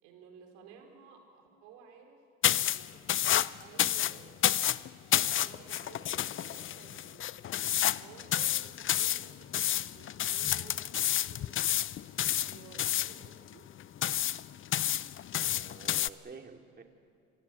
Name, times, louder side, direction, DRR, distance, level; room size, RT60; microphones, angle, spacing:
voice 1, 0.0-2.2 2.5-3.2 3.5-4.5 5.1-7.3 7.9-11.5 12.2-13.6, right 6 dB, 90° right, 2 dB, 4.5 m, -55 dB
sound 1, 2.4-16.1, left 11 dB, 45° left, 0.6 m, -30 dB
voice 2, 15.4-16.8, right 4 dB, 35° right, 4 dB, 2.8 m, -50 dB
26.0 x 18.5 x 8.5 m, 2.5 s
supercardioid pair, 80°, 29 cm